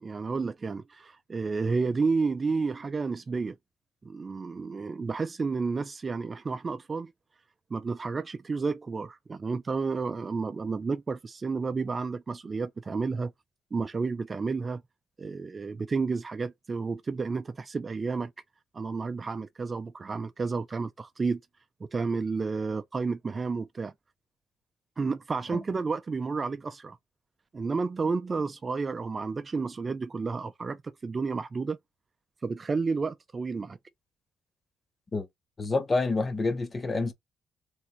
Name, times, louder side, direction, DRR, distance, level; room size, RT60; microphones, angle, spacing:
voice 1, 0.0-3.5 4.0-7.1 7.7-13.3 13.7-14.8 15.2-18.3 18.7-21.4 21.8-23.9 25.0-27.0 27.5-31.8 32.4-33.8, right 4 dB, 35° right, 0.4 m, -31 dB
voice 2, 35.6-37.1, left 3 dB, 30° left, 1.1 m, -28 dB
3.5 x 2.7 x 4.5 m
cardioid pair, 90°, 0 cm